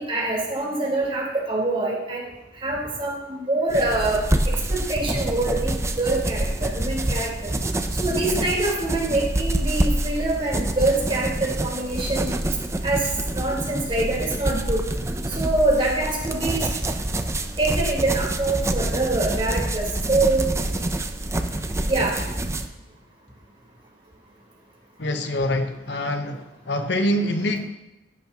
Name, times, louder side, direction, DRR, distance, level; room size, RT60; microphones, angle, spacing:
voice 1, 0.0-2.3 2.6-4.2 4.7-7.5 8.0-12.3 12.8-13.1 13.3-14.8 15.3-16.7 17.6-20.5 21.9-22.1, right 2 dB, 35° right, -4 dB, 4.1 m, -24 dB
sound 1, 3.7-22.7, right 1 dB, 15° right, 0.6 m, -26 dB
voice 2, 25.0-27.7, left 1 dB, 85° left, 7 dB, 1.0 m, -25 dB
16.0 x 11.5 x 3.0 m, 0.99 s
head